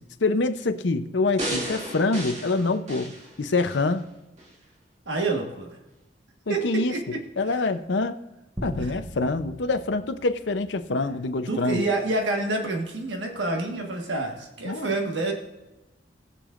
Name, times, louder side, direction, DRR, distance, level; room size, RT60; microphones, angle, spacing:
voice 1, 0.2-3.1 3.4-4.1 6.5-6.9 7.4-8.1 8.6-11.8 14.6-14.9, left 3 dB, 70° left, 9 dB, 0.7 m, -25 dB
sound 1, 1.4-3.9 4.4-4.5, right 1 dB, 40° right, 2.1 m, -34 dB
voice 2, 5.0-5.8 6.5-7.2 7.5-7.7 8.8-9.0 11.5-15.3, right 2 dB, 75° right, 2 dB, 1.5 m, -28 dB
sound 2, 8.6-11.2, equal, 20° right, 0.9 m, -40 dB
19.5 x 6.9 x 2.5 m, 0.99 s
head